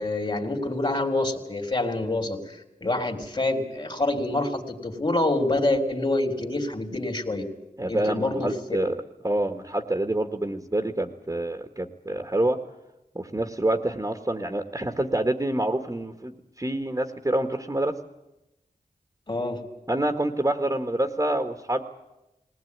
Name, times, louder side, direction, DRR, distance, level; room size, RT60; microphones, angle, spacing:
voice 1, 0.0-7.5 7.9-8.5 19.3-19.6, left 2 dB, 35° left, 4 dB, 3.2 m, -26 dB
voice 2, 7.8-9.0 9.2-12.6 13.1-17.9 19.9-21.8, right 1 dB, 20° right, 5 dB, 1.8 m, -27 dB
19.5 x 19.0 x 9.6 m, 0.95 s
cardioid pair, 45°, 15 cm